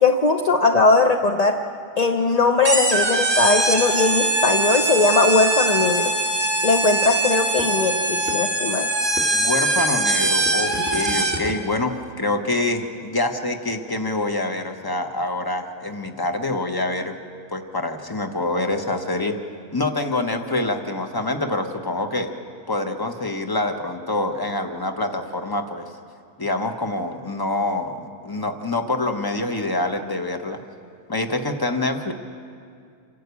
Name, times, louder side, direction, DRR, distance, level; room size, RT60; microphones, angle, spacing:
voice 1, 0.0-1.6 2.0-6.1 6.6-8.9, left 3 dB, 45° left, 4 dB, 0.5 m, -19 dB
sound 1, 2.6-11.6, right 2 dB, 15° right, 2.0 m, -22 dB
voice 2, 9.3-17.1 17.5-19.3 19.7-22.3 22.7-25.8 26.4-30.6 31.1-32.1, left 2 dB, 15° left, 5 dB, 0.9 m, -26 dB
27.5 x 11.5 x 8.3 m, 2.3 s
omnidirectional pair, 1.6 m